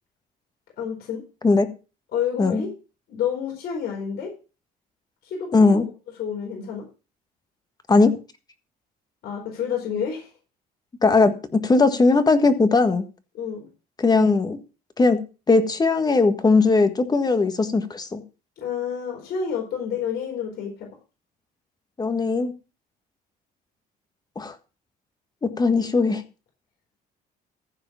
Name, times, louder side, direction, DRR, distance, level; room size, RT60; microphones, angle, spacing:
voice 1, 0.8-1.2 2.1-2.7 3.1-4.3 5.2-5.9 6.2-6.9 9.2-10.3 13.3-13.7 18.6-20.9, left 7 dB, 70° left, 0 dB, 4.5 m, -29 dB
voice 2, 5.5-5.8 7.9-8.1 11.0-13.0 14.0-14.6 15.0-15.2 15.5-18.2 22.0-22.5 24.3-24.5 25.4-26.2, left 3 dB, 25° left, 10 dB, 1.5 m, -19 dB
14.5 x 4.9 x 7.1 m, 0.33 s
cardioid pair, 110°, 17 cm